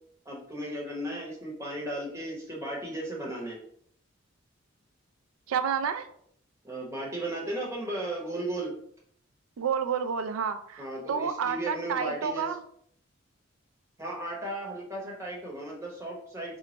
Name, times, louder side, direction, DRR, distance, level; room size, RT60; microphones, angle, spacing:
voice 1, 0.3-3.6 6.6-8.7 10.8-12.5 14.0-16.6, right 1 dB, 15° right, -3 dB, 0.8 m, -35 dB
voice 2, 5.5-6.1 9.6-12.6, right 7 dB, 90° right, 9 dB, 0.4 m, -30 dB
3.1 x 2.1 x 3.9 m, 0.66 s
head